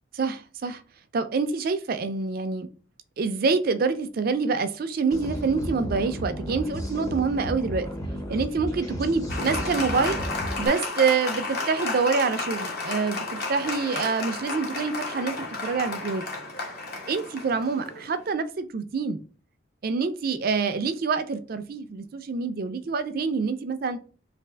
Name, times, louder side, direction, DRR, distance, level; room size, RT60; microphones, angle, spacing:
voice 1, 0.1-0.8 1.1-2.7 3.2-7.9 8.3-10.2 10.6-16.2 17.1-19.2 19.8-24.0, right 4 dB, 45° right, 0.4 m, -26 dB
sound 1, 5.1-10.7, equal, 15° left, 0.6 m, -33 dB
Applause, 9.3-18.3, left 3 dB, 50° left, 0.8 m, -32 dB
3.3 x 2.4 x 3.3 m
head